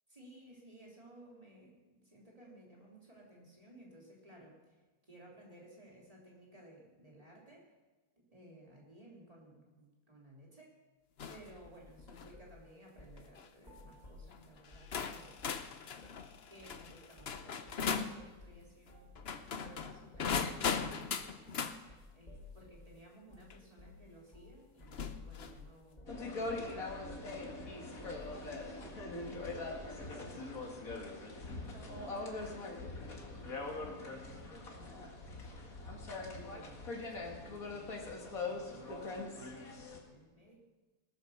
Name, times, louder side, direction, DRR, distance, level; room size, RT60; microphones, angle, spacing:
voice 1, 0.1-7.7 8.2-10.7 11.3-15.4 16.5-19.1 19.5-21.5 22.1-28.9 29.1-33.0 33.2-35.8 36.3-40.6, right 1 dB, 25° right, -3 dB, 3.6 m, -58 dB
sound 1, 11.2-11.5 12.0-12.3 13.2-13.5 14.3-14.4 14.9-18.2 19.2-21.8 23.5-23.6 24.9-25.6, left 6 dB, 50° left, 1.0 m, -38 dB
sound 2, 11.6-12.6 13.0-13.3 13.6-15.0 15.4-15.6 16.0-16.2 16.6-16.8 17.2-17.4 17.7-22.9 23.3-23.5 23.8-24.1 24.3-24.6 24.8-29.9, left 2 dB, 25° left, 3.3 m, -55 dB
sound 3, 26.1-40.0, left 3 dB, 70° left, 2.5 m, -42 dB
20.0 x 9.1 x 6.7 m, 1.2 s
omnidirectional pair, 1.6 m